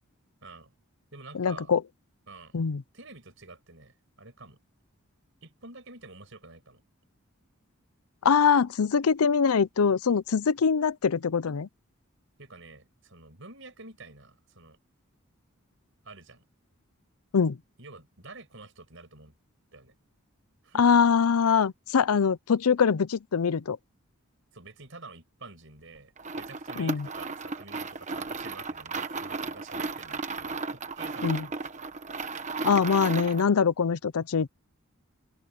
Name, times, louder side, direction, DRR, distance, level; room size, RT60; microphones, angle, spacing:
voice 1, 0.4-0.7 1.1-1.7 2.3-2.5 2.9-4.6 5.4-6.8 12.4-14.8 16.0-16.4 17.8-19.4 19.7-19.9 20.6-20.8 21.4-21.6 24.5-31.6, right 3 dB, 60° right, 6.1 m, -48 dB
voice 2, 1.3-1.8 2.5-2.8 8.2-11.7 17.3-17.6 20.8-23.8 26.8-27.1 31.2-31.5 32.6-34.5, left 6 dB, 90° left, 0.5 m, -23 dB
sound 1, 26.2-33.5, right 3 dB, 35° right, 1.3 m, -35 dB
open air
head